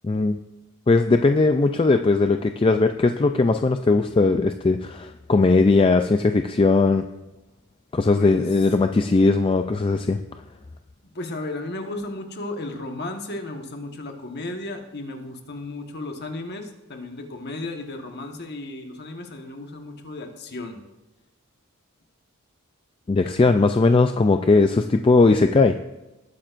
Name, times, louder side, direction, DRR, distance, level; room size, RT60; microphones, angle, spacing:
voice 1, 0.0-0.4 0.9-7.0 7.9-10.2 23.1-25.8, left 3 dB, 25° left, 7 dB, 0.3 m, -19 dB
voice 2, 8.1-8.6 11.0-20.8, left 2 dB, 50° left, 4 dB, 1.3 m, -34 dB
19.5 x 9.0 x 2.5 m, 0.99 s
head